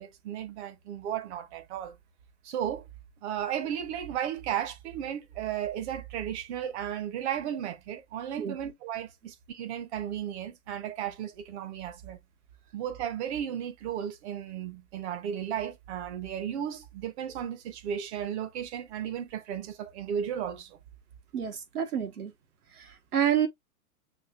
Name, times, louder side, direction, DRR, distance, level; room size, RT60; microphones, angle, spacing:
voice 1, 0.0-1.9 2.4-2.9 3.2-12.2 12.7-20.8, right 9 dB, 50° right, 1.1 m, -34 dB
voice 2, 21.3-22.3 22.7-23.5, right 9 dB, 85° right, 1.5 m, -29 dB
6.4 x 2.9 x 2.5 m
hypercardioid pair, 125°, 44 cm